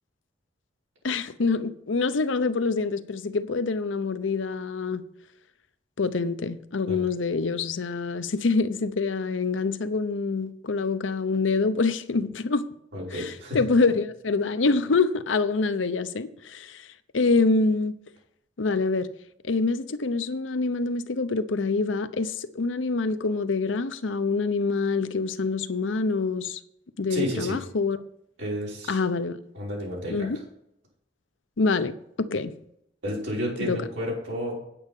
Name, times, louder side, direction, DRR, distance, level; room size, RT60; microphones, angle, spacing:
voice 1, 1.0-5.0 6.0-12.6 13.1-16.9 17.1-18.0 18.6-19.1 19.4-26.6 27.0-28.0 28.9-29.4 30.1-30.4 31.6-32.5 33.6-33.8, left 4 dB, 90° left, 0.7 m, -26 dB
voice 2, 12.9-13.6 27.1-27.6 28.4-29.0 29.5-30.3 33.0-34.5, equal, 80° right, 5.3 m, -31 dB
9.2 x 8.5 x 5.4 m
head